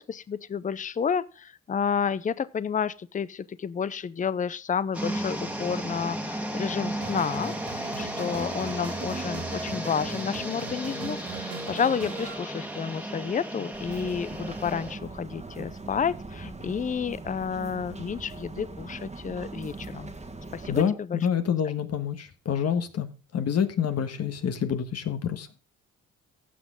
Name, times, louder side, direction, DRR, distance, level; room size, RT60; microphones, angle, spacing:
voice 1, 0.0-7.5 8.0-20.1 20.5-21.2, left 7 dB, 25° left, 0.6 m, -30 dB
sound 1, 4.9-14.9, right 1 dB, 5° right, 1.8 m, -34 dB
sound 2, 7.0-12.3, right 5 dB, 65° right, 2.9 m, -40 dB
sound 3, 13.7-20.8, right 3 dB, 25° right, 1.6 m, -40 dB
voice 2, 20.7-25.5, left 8 dB, 55° left, 1.5 m, -27 dB
15.5 x 6.2 x 3.7 m
cardioid pair, 90°, 30 cm